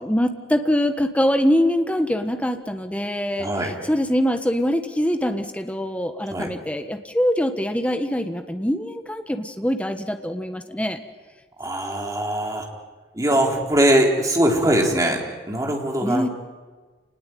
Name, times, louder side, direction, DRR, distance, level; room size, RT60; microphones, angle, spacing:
voice 1, 0.0-11.0 16.0-16.3, equal, 10° left, 7 dB, 1.4 m, -23 dB
voice 2, 3.4-3.8 6.3-6.5 11.6-12.7 13.1-16.3, right 1 dB, 20° right, 0 dB, 4.0 m, -21 dB
28.5 x 20.0 x 9.3 m, 1.4 s
head